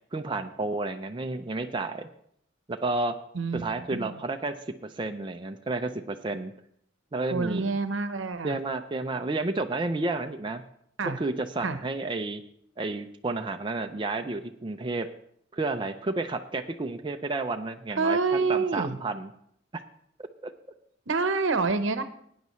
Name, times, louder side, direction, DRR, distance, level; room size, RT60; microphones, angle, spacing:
voice 1, 0.1-2.1 2.7-3.2 3.5-6.5 7.1-7.7 8.4-10.6 11.0-12.4 12.8-15.1 15.5-19.3 19.7-19.8 20.2-20.5, right 2 dB, 25° right, 5 dB, 0.4 m, -31 dB
voice 2, 7.3-8.6 11.0-11.2 11.6-11.8 18.0-19.0 21.1-22.0, right 4 dB, 80° right, 11 dB, 0.8 m, -27 dB
17.5 x 9.4 x 3.1 m, 0.69 s
head